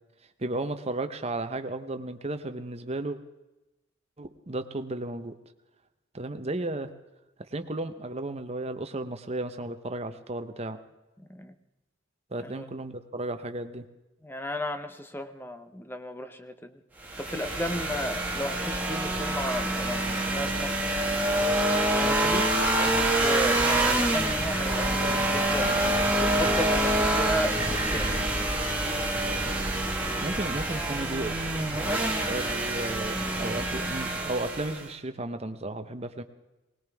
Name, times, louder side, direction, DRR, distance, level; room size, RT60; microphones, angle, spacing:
voice 1, 0.4-3.2 4.2-5.4 6.1-6.9 7.4-10.8 12.3-13.9 22.0-22.5 30.2-31.3 32.3-36.2, right 2 dB, 30° right, 8 dB, 0.9 m, -34 dB
voice 2, 11.2-11.5 12.4-12.7 14.2-16.8 17.2-20.9 22.8-25.8 26.2-28.5, left 1 dB, 10° left, 9 dB, 0.8 m, -35 dB
sound 1, 17.0-34.9, right 1 dB, 10° right, 1.5 m, -26 dB
20.5 x 19.5 x 3.5 m, 1.0 s
head